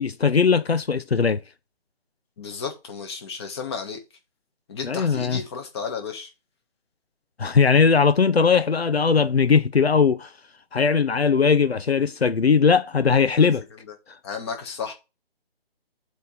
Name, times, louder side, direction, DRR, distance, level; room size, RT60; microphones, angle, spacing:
voice 1, 0.0-1.4 4.8-5.4 7.4-10.3 10.7-13.6, left 5 dB, 90° left, 0.8 m, -19 dB
voice 2, 2.4-4.0 4.7-6.3 13.4-14.0 14.2-14.9, left 5 dB, 25° left, 1.6 m, -33 dB
8.2 x 3.3 x 5.6 m
figure-of-eight pair, 155°, 31 cm